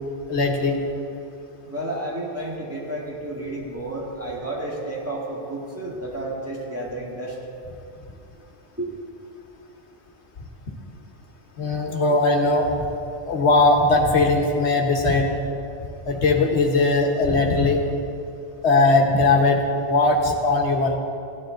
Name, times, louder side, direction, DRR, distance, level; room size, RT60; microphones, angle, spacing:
voice 1, 0.3-0.8 11.6-12.8 13.3-15.3 16.1-17.8 18.6-21.0, left 2 dB, 85° left, 2 dB, 1.5 m, -19 dB
voice 2, 1.7-7.4 8.8-8.9, right 1 dB, 15° right, -5 dB, 1.8 m, -31 dB
15.5 x 10.0 x 3.9 m, 2.6 s
omnidirectional pair, 1.1 m